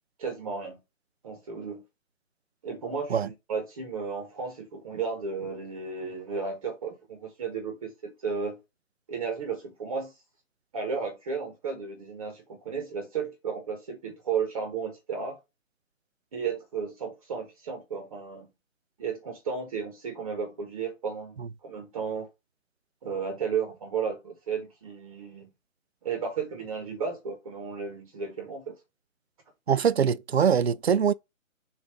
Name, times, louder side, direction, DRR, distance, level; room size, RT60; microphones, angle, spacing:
voice 1, 0.2-0.8 1.2-1.8 2.6-8.6 9.1-10.2 10.7-15.4 16.3-18.5 19.0-22.3 23.0-25.5 26.0-28.7, right 5 dB, 25° right, 1.1 m, -34 dB
voice 2, 29.7-31.1, right 7 dB, 50° right, 0.5 m, -23 dB
7.1 x 2.6 x 5.2 m
figure-of-eight pair, 150°, 41 cm